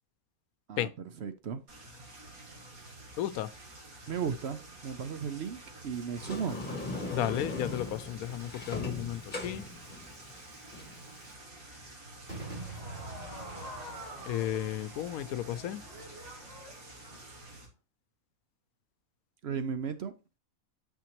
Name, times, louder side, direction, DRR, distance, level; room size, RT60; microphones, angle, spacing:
voice 1, 0.7-1.6 4.1-6.6 19.4-20.1, right 6 dB, 60° right, 0.8 m, -35 dB
sound 1, 1.7-17.7, right 2 dB, 80° right, 2.7 m, -50 dB
voice 2, 3.2-3.5 7.1-9.6 14.3-15.8, left 12 dB, 80° left, 1.0 m, -33 dB
Sliding door, 6.2-11.3, left 2 dB, 35° left, 1.5 m, -39 dB
Crowd / Fireworks, 12.3-17.5, right 1 dB, 40° right, 3.2 m, -45 dB
8.7 x 5.7 x 3.0 m
omnidirectional pair, 1.5 m